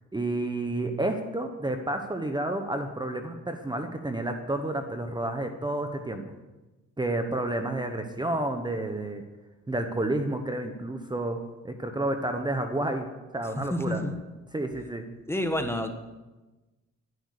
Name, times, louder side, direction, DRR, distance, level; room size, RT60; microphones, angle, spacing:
voice 1, 0.1-6.2 7.0-9.2 9.7-11.4 11.6-13.1 13.3-14.0 14.5-15.0, right 1 dB, 15° right, 6 dB, 1.2 m, -30 dB
voice 2, 13.7-14.1 15.3-15.9, left 1 dB, 10° left, 6 dB, 1.4 m, -28 dB
11.5 x 11.0 x 6.7 m, 1.1 s
cardioid pair, 90°, 30 cm